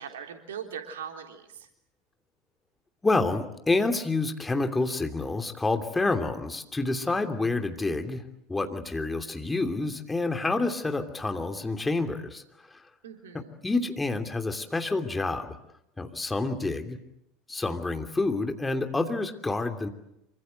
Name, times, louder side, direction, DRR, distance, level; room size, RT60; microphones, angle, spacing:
voice 1, 0.0-1.7 13.0-13.5, right 7 dB, 65° right, 5 dB, 3.4 m, -40 dB
voice 2, 3.0-8.2 8.5-12.4 13.3-15.5 16.0-17.0 17.5-19.9, left 3 dB, 10° left, 6 dB, 2.9 m, -28 dB
27.0 x 25.0 x 8.0 m, 0.81 s
figure-of-eight pair, 75°, 0 cm